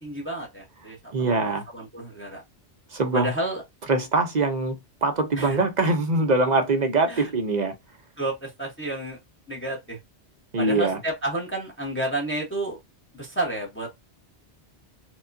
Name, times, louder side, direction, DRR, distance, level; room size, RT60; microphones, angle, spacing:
voice 1, 0.0-1.0 1.4-2.4 3.1-3.6 5.4-5.6 7.1-7.3 8.2-9.2 9.5-10.0 10.6-12.8 13.1-13.9, right 1 dB, 10° left, 0.9 m, -30 dB
voice 2, 1.1-1.6 2.9-3.3 3.9-7.7 10.5-11.0, right 3 dB, 45° right, 0.8 m, -23 dB
4.5 x 2.4 x 2.6 m
omnidirectional pair, 1.1 m